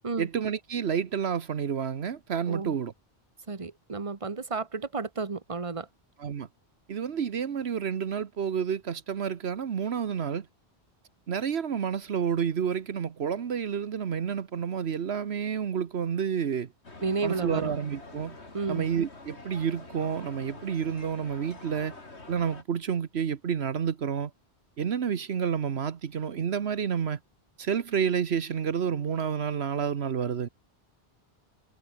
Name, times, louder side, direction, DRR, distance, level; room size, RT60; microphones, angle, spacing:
voice 1, 0.2-2.9 6.2-6.5 6.9-10.5 11.3-16.7 17.2-18.4 18.7-21.9 22.3-24.3 24.8-27.2 27.6-30.5, right 7 dB, 75° right, 1.3 m, -29 dB
voice 2, 3.5-5.9 17.0-17.8 18.5-18.9, right 4 dB, 30° right, 1.4 m, -32 dB
sound 1, 16.8-22.6, left 2 dB, 85° left, 3.9 m, -46 dB
omnidirectional pair, 1.1 m